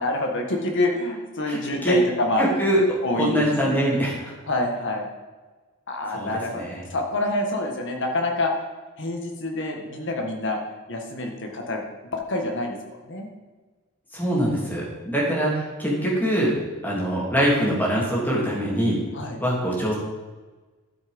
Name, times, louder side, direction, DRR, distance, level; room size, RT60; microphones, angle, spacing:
voice 1, 0.0-2.4 3.0-3.5 4.5-5.1 5.9-6.6 6.9-8.5 9.0-10.6 10.9-11.8 12.1-12.8 13.0-13.3 19.1-19.4, left 2 dB, 55° left, 2 dB, 1.8 m, -26 dB
voice 2, 1.5-2.0 2.4-4.3 6.1-6.8 14.1-16.5 16.8-19.0 19.4-20.0, equal, 10° left, -5 dB, 3.0 m, -23 dB
12.0 x 6.5 x 5.4 m, 1.3 s
head